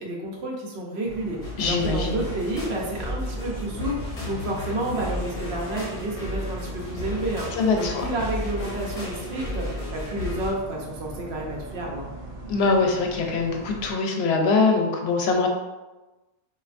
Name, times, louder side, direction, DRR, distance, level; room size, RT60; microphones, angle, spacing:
voice 1, 0.0-7.5 7.7-12.1, right 1 dB, 90° right, -2 dB, 1.0 m, -30 dB
sound 1, 1.0-13.9, right 2 dB, 65° right, 0.8 m, -40 dB
sound 2, 1.4-10.5, left 2 dB, 40° left, 1.0 m, -33 dB
voice 2, 1.6-2.2 7.6-8.0 12.5-15.5, left 4 dB, 85° left, 2 dB, 0.8 m, -23 dB
3.2 x 2.5 x 2.5 m, 1.1 s
omnidirectional pair, 1.1 m